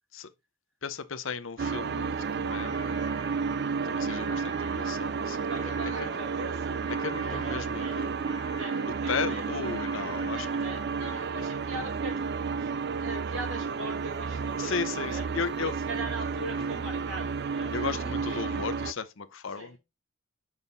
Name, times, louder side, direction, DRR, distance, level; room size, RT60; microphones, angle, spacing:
voice 1, 0.8-3.0 3.8-5.6 6.0-6.2 7.0-8.1 9.1-10.6 14.6-15.7 16.7-16.8 17.7-19.8, left 5 dB, 65° left, 0.7 m, -35 dB
sound 1, 1.6-18.9, right 5 dB, 50° right, 0.4 m, -31 dB
sound 2, 2.7-11.3, left 4 dB, 20° left, 0.9 m, -50 dB
voice 2, 5.3-6.8 7.2-8.1 8.4-9.4 10.2-12.3 12.6-12.7 13.0-15.3 15.6-17.7 18.3-18.6 19.5-19.8, right 2 dB, 70° right, 4.0 m, -41 dB
6.4 x 5.5 x 4.0 m
head